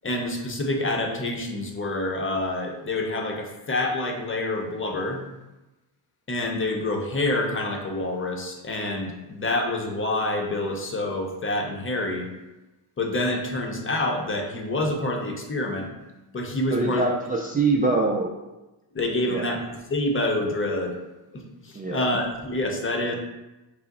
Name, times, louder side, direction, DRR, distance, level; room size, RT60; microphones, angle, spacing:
voice 1, 0.0-5.2 6.3-12.3 13.0-15.9 16.3-17.1 18.9-19.6 19.9-20.9 21.3-23.1, left 2 dB, 25° left, 2 dB, 0.7 m, -27 dB
voice 2, 16.7-18.3 19.3-19.5 21.7-22.1, right 3 dB, 20° right, -1 dB, 0.4 m, -24 dB
5.6 x 2.0 x 3.8 m, 1.0 s
cardioid pair, 85°, 46 cm